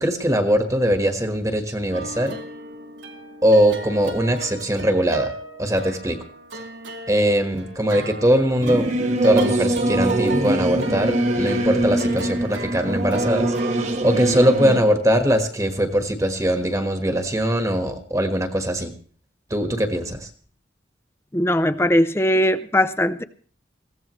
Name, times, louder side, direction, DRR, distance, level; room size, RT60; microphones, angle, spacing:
voice 1, 0.0-2.4 3.4-5.3 5.6-6.2 7.1-8.9 9.2-18.9 19.5-20.3, equal, 15° right, 6 dB, 1.4 m, -21 dB
sound 1, 1.9-15.6, right 1 dB, 75° right, 2.1 m, -35 dB
Singing / Musical instrument, 8.6-14.8, right 1 dB, 40° right, 1.6 m, -23 dB
voice 2, 21.3-23.2, left 1 dB, 15° left, 13 dB, 0.6 m, -19 dB
21.5 x 16.0 x 3.1 m, 0.44 s
head